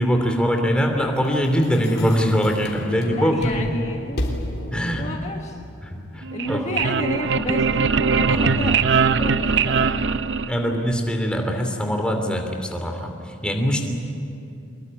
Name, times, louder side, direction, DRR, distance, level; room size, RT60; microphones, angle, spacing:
voice 1, 0.0-3.5 4.7-5.1 5.8-6.7 8.2-8.7 10.5-13.8, equal, 5° left, 3 dB, 2.8 m, -23 dB
sound 1, 0.9-5.3, left 1 dB, 50° left, 3.4 m, -33 dB
voice 2, 3.1-4.4 5.0-5.6 6.3-8.8 9.1-10.1, left 1 dB, 35° left, 2 dB, 1.3 m, -31 dB
sound 2, 6.2-10.9, right 5 dB, 60° right, 0.6 m, -21 dB
24.0 x 21.5 x 9.8 m, 2.6 s
head